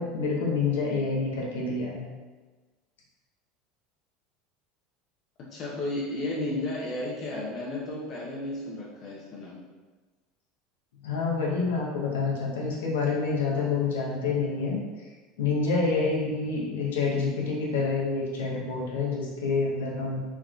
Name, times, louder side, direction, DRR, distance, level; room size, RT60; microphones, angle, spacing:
voice 1, 0.0-2.0 11.0-15.1 15.4-20.2, left 4 dB, 85° left, -3 dB, 0.7 m, -27 dB
voice 2, 5.5-9.6, left 1 dB, 50° left, -4 dB, 0.5 m, -33 dB
3.3 x 2.3 x 2.3 m, 1.3 s
hypercardioid pair, 95°, 0 cm